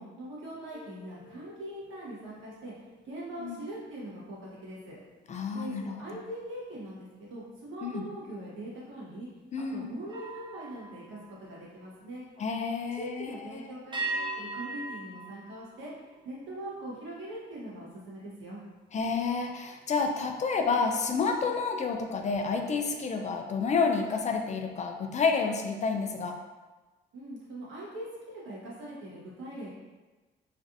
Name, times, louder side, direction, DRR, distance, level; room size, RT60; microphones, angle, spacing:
voice 1, 0.0-2.7 3.0-5.0 5.5-9.3 9.7-12.3 13.0-15.9 16.2-18.6 27.1-29.7, right 1 dB, 75° right, -6 dB, 1.2 m, -42 dB
sound 1, 0.7-6.3 6.8-7.1 10.0-12.2 13.9-16.5, right 2 dB, 25° right, 0.5 m, -42 dB
voice 2, 5.3-6.2 7.8-8.0 9.5-10.0 12.4-13.7 18.9-26.4, left 4 dB, 35° left, 4 dB, 0.3 m, -30 dB
3.2 x 2.4 x 2.6 m, 1.2 s
cardioid pair, 90°, 20 cm